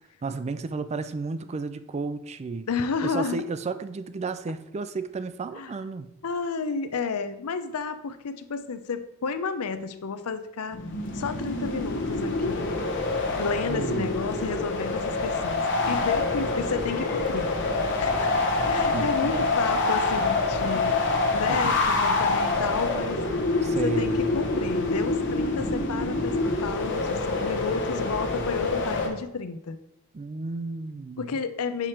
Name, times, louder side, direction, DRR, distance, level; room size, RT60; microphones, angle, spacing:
voice 1, 0.2-2.7 3.0-6.1 13.7-14.1 18.9-19.5 21.5-21.7 23.6-24.3 30.1-31.4, right 3 dB, 30° right, 11 dB, 0.4 m, -33 dB
voice 2, 2.7-3.4 5.5-5.7 6.2-10.8 11.1-12.7 13.3-17.5 18.0-18.3 18.6-20.9 21.3-23.2 23.5-29.8 31.2-31.9, left 5 dB, 70° left, 11 dB, 0.6 m, -31 dB
sound 1, 10.7-29.1, left 3 dB, 55° left, 1.0 m, -26 dB
sound 2, 16.7-22.0, left 1 dB, 40° left, 1.4 m, -41 dB
6.0 x 4.9 x 4.3 m, 0.87 s
head